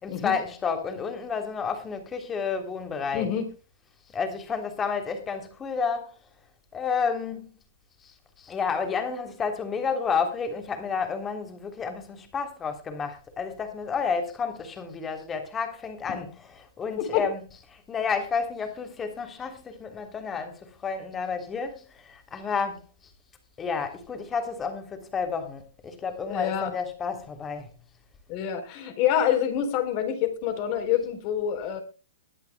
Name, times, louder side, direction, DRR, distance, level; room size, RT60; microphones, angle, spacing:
voice 1, 0.0-3.3 4.1-6.2 6.7-7.5 8.0-16.3 16.6-17.4 17.7-22.8 23.6-27.7, left 5 dB, 15° left, 3.3 m, -31 dB
voice 2, 3.1-3.5 17.1-17.2 26.3-26.7 28.3-31.8, left 10 dB, 35° left, 4.0 m, -26 dB
22.0 x 10.5 x 2.3 m
hypercardioid pair, 150°, 0 cm